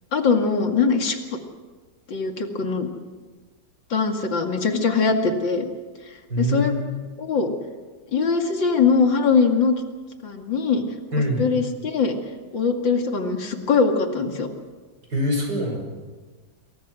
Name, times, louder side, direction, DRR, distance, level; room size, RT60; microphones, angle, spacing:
voice 1, 0.1-1.4 2.1-2.9 3.9-5.7 6.4-6.7 7.2-7.5 8.1-9.7 10.2-10.8 11.4-12.1 12.5-14.5, left 5 dB, 75° left, 4 dB, 3.0 m, -21 dB
voice 2, 6.3-6.8 11.1-11.5 15.1-15.8, equal, 60° right, 2 dB, 6.8 m, -24 dB
27.5 x 22.5 x 6.3 m, 1.4 s
omnidirectional pair, 2.1 m